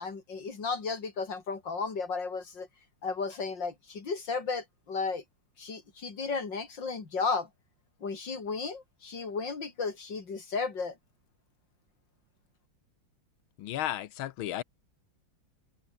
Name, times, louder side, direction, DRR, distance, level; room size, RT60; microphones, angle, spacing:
voice 1, 0.0-2.7 3.0-5.2 5.6-7.5 8.0-11.0, left 4 dB, 65° left, 3.7 m, -34 dB
voice 2, 13.6-14.6, left 13 dB, 85° left, 1.7 m, -34 dB
open air
omnidirectional pair, 2.2 m